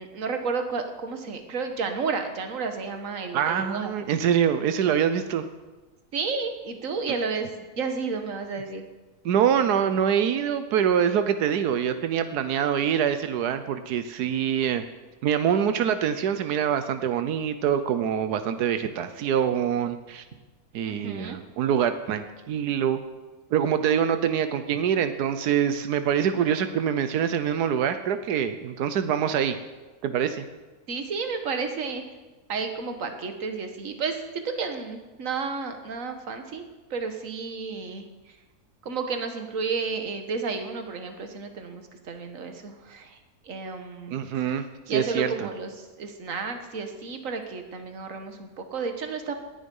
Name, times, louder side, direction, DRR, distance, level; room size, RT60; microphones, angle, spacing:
voice 1, 0.0-3.9 6.1-8.9 20.9-21.4 30.9-32.0 32.5-38.4 38.8-43.2 43.4-44.2 44.9-49.3, right 4 dB, 60° right, 6 dB, 1.8 m, -32 dB
voice 2, 3.3-5.4 9.2-14.8 15.2-20.2 20.7-23.0 23.5-29.6 30.0-30.4 44.1-45.5, right 8 dB, 90° right, 10 dB, 1.3 m, -25 dB
19.0 x 10.5 x 5.5 m, 1.2 s
omnidirectional pair, 1.6 m